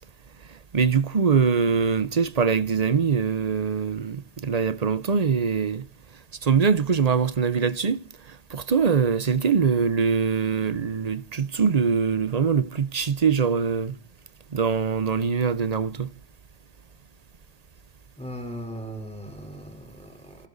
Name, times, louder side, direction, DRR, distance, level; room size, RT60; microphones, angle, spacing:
voice 1, 0.7-5.8 6.4-8.0 8.5-14.0 14.5-16.1, right 6 dB, 40° right, 0.9 m, -23 dB
voice 2, 18.2-20.5, equal, 5° left, 4.1 m, -38 dB
28.5 x 12.0 x 4.1 m
omnidirectional pair, 1.1 m